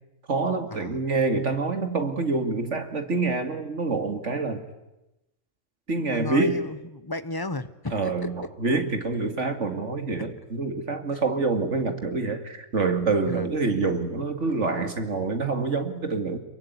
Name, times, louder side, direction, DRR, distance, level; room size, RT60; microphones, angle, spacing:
voice 1, 0.3-4.6 5.9-6.7 7.9-16.4, right 3 dB, 70° right, 7 dB, 2.7 m, -26 dB
voice 2, 6.0-8.3 10.2-10.3 11.1-11.2 13.2-13.5, left 2 dB, 20° left, 13 dB, 1.0 m, -34 dB
26.5 x 22.5 x 9.6 m, 0.96 s
omnidirectional pair, 1.3 m